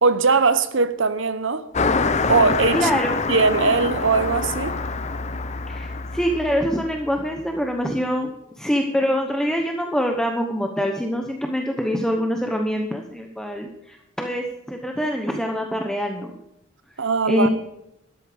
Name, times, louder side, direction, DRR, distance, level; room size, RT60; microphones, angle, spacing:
voice 1, 0.0-1.7 2.3-2.9 3.3-4.8 17.0-17.5, right 4 dB, 65° right, 1.0 m, -20 dB
Car passing by, 1.7-7.6, left 4 dB, 35° left, 0.7 m, -26 dB
voice 2, 2.7-3.1 5.7-16.3 17.3-17.5, equal, 5° left, 1.0 m, -24 dB
13.0 x 11.0 x 5.1 m
head